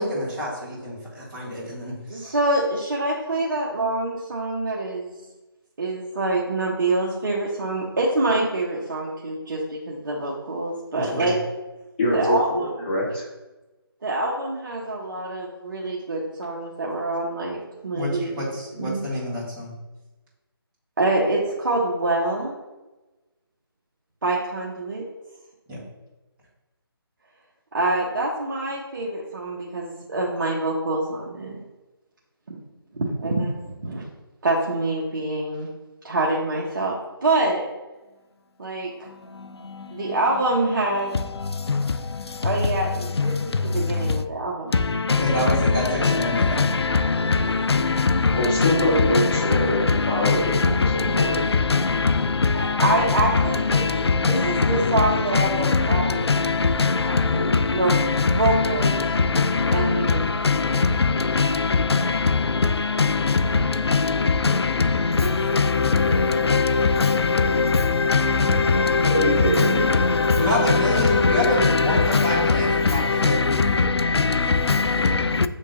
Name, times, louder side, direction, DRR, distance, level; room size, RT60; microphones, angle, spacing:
voice 1, 0.0-2.3 10.9-11.3 17.9-19.7 25.7-25.8 45.2-46.7 70.3-73.4, left 1 dB, 10° right, 1.9 m, -27 dB
voice 2, 2.1-5.1 5.8-11.4 12.1-13.0 14.0-18.3 18.8-19.0 21.0-22.5 24.2-25.0 27.7-31.6 32.5-32.6 32.9-34.0 34.4-35.7 36.0-36.9 37.2-37.7 38.6-39.1 39.9-41.1 42.4-44.7 52.5-56.4 57.1-57.9 58.3-58.9 59.7-60.3 60.7-60.8, right 2 dB, 50° right, 0.9 m, -26 dB
voice 3, 12.0-13.3 48.3-51.4 69.1-69.8, equal, 25° left, 1.7 m, -24 dB
voice 4, 55.3-55.7 56.3-56.4 56.8-56.9 57.9-58.0 58.8-58.9 59.3-59.7 60.4-60.6 61.4-61.5 61.9-62.0 63.0-63.1 63.9-64.0 64.4-64.6 65.5-65.7 65.9-72.8 73.1-73.9 74.1-74.2 74.7-74.8, left 4 dB, 85° left, 0.5 m, -20 dB
6.8 x 3.7 x 3.8 m
figure-of-eight pair, 160°, 13 cm